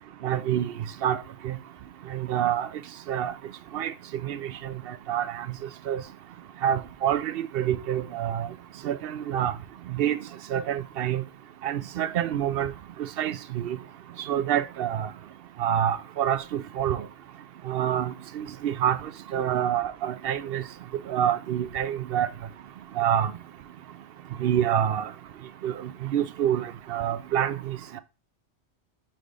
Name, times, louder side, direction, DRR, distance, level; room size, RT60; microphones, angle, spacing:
voice 1, 0.2-0.7 1.0-1.2 1.4-1.5 2.1-2.7 3.1-3.3 3.7-3.9 4.2-4.7 5.1-5.5 5.9-6.0 6.6-8.5 8.8-9.5 9.9-10.2 10.5-11.2 11.6-12.7 13.2-13.8 14.3-15.1 15.6-17.0 17.7-19.0 19.3-20.6 21.1-22.3 23.0-23.3 24.4-25.1 25.6-25.7 26.0-28.0, right 10 dB, 65° right, 0.7 m, -27 dB
6.0 x 3.3 x 4.9 m
omnidirectional pair, 1.2 m